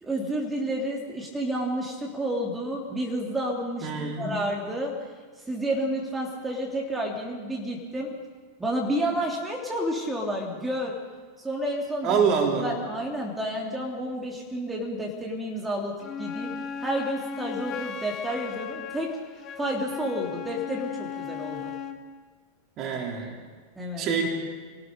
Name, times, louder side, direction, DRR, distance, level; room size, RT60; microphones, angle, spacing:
voice 1, 0.0-3.9 4.2-4.9 5.5-8.1 8.6-11.0 11.4-12.2 12.6-16.5 16.8-19.2 19.6-21.7 23.8-24.1, right 1 dB, 10° right, -1 dB, 3.1 m, -30 dB
voice 2, 3.8-4.4 12.0-12.7 22.8-23.4 24.0-24.3, right 6 dB, 35° right, 1 dB, 3.9 m, -25 dB
Wind instrument woodwind instrument, 16.0-22.0, left 7 dB, 30° left, 1.7 m, -36 dB
28.5 x 18.0 x 5.2 m, 1.5 s
figure-of-eight pair, 90°, 0 cm